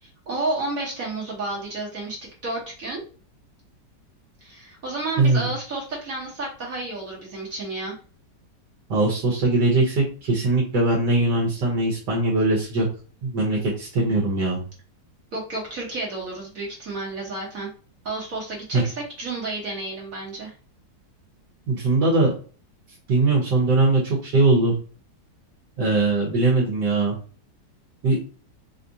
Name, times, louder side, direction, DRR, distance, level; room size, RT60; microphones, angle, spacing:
voice 1, 0.0-3.0 4.4-8.0 15.3-17.7 18.0-20.5, right 2 dB, 55° right, -4 dB, 1.4 m, -31 dB
voice 2, 8.9-12.9 13.2-14.6 18.7-18.8 21.7-22.3 23.1-24.7 25.8-27.2 28.0-28.2, right 2 dB, 75° right, -3 dB, 1.6 m, -21 dB
4.4 x 2.4 x 2.6 m, 0.39 s
omnidirectional pair, 1.9 m